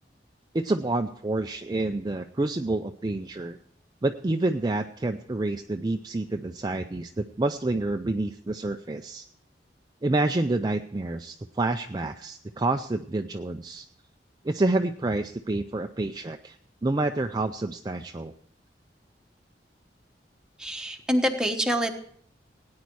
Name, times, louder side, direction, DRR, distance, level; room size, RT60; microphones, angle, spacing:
voice 1, 0.5-3.6 4.0-9.3 10.0-13.9 14.4-16.6 16.8-18.3, right 2 dB, 25° right, 6 dB, 0.4 m, -28 dB
voice 2, 20.6-21.9, equal, 5° right, 3 dB, 1.1 m, -26 dB
17.5 x 9.6 x 4.6 m, 0.64 s
head